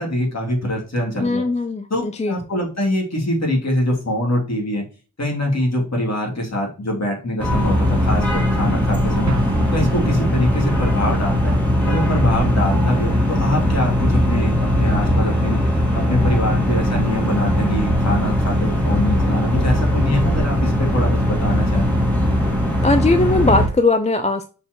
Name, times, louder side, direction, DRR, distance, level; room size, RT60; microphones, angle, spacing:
voice 1, 0.0-1.4 1.9-4.9 5.2-9.3 9.7-11.6 11.9-15.6 15.9-21.9, left 1 dB, 50° left, 3.0 m, -23 dB
voice 2, 1.2-2.4 22.8-24.4, left 2 dB, 20° left, 0.5 m, -19 dB
sound 1, 7.4-23.7, equal, 5° left, 2.2 m, -19 dB
Explosion, 9.3-10.9, right 4 dB, 55° right, 0.9 m, -31 dB
6.7 x 4.5 x 3.1 m
wide cardioid pair, 70°, 34 cm